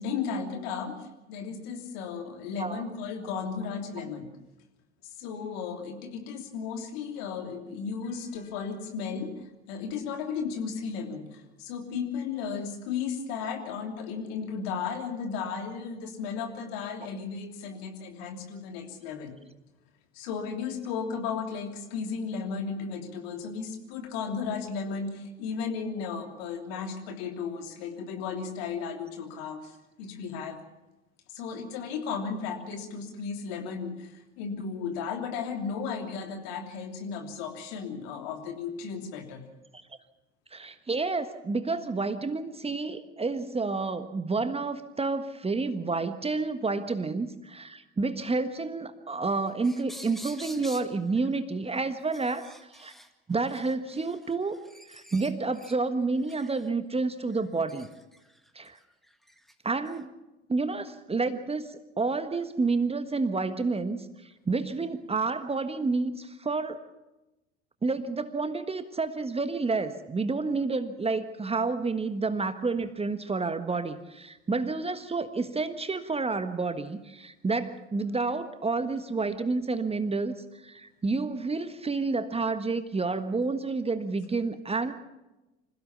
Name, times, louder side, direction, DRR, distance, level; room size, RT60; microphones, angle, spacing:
voice 1, 0.0-4.3 5.0-19.3 20.1-30.6 31.3-39.4, left 6 dB, 60° left, 4 dB, 3.2 m, -35 dB
voice 2, 40.5-52.5 52.7-52.9 53.3-54.6 54.9-57.9 58.5-58.8 59.6-60.1 60.5-64.0 64.5-66.8 67.8-80.4 80.6-84.9, right 3 dB, 15° right, 11 dB, 1.4 m, -29 dB
sound 1, 49.5-50.9 51.2-51.4 52.0-55.8 56.2-56.7 57.3-59.5 59.9-60.0, equal, ahead, 1.9 m, -48 dB
26.5 x 16.0 x 7.0 m, 1.0 s
figure-of-eight pair, 60°, 35 cm